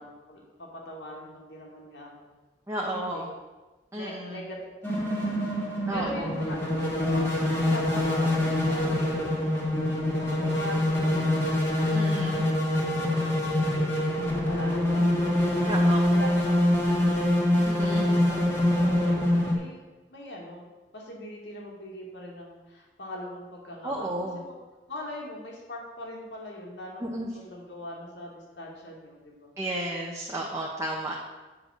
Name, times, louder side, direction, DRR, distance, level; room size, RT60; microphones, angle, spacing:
voice 1, 0.0-2.3 2.8-3.2 3.9-4.6 4.9-5.3 5.9-6.6 6.9-7.3 7.5-9.8 10.3-11.9 12.7-14.1 14.4-15.3 16.1-17.2 17.8-19.8 20.1-20.7 20.9-24.6 24.9-29.5, equal, 75° left, -2 dB, 2.3 m, -41 dB
voice 2, 2.7-3.3 3.9-4.4 5.9-6.3 11.9-12.5 15.7-16.1 17.6-18.0 23.8-24.4 27.0-27.3 29.6-31.2, right 1 dB, 15° right, -2 dB, 0.9 m, -32 dB
sound 1, 4.8-19.6, left 1 dB, 15° left, 1.8 m, -25 dB
8.2 x 5.2 x 6.5 m, 1.2 s
head